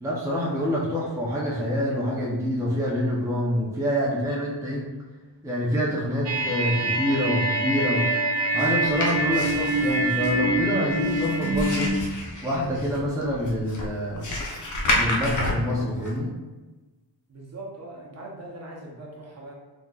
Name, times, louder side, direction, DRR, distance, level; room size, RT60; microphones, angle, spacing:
voice 1, 0.0-4.9 5.4-8.1 8.5-12.0 12.4-14.3 14.9-16.3, equal, 5° right, -5 dB, 0.6 m, -26 dB
sound 1, 6.3-12.0, right 1 dB, 80° right, 0.7 m, -25 dB
sound 2, 8.6-16.2, left 1 dB, 45° left, 0.7 m, -30 dB
voice 2, 17.3-19.5, right 2 dB, 35° right, -3 dB, 0.8 m, -40 dB
4.2 x 3.7 x 2.4 m, 1.2 s
wide cardioid pair, 140°, 43 cm